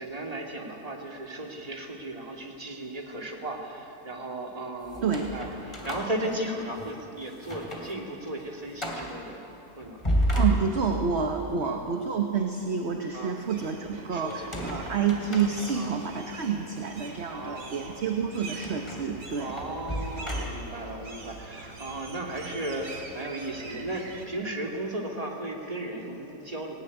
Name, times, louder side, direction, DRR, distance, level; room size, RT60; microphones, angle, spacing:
voice 1, 0.0-9.4 9.7-10.0 11.6-11.8 13.1-13.4 14.1-14.5 15.7-16.1 17.3-18.3 19.4-26.7, right 1 dB, 25° right, 0 dB, 2.3 m, -36 dB
sound 1, 4.9-7.0 7.4-8.0 8.3-8.4 8.8-9.2 9.8-11.1 14.3-16.1 16.7-16.9 18.6-20.9, right 1 dB, 20° left, 2.9 m, -32 dB
voice 2, 5.0-5.3 10.3-19.5, right 6 dB, 45° right, 3 dB, 1.3 m, -29 dB
sound 2, 13.5-24.3, right 3 dB, 80° right, 2.7 m, -44 dB
18.0 x 17.5 x 9.7 m, 3.0 s
omnidirectional pair, 1.7 m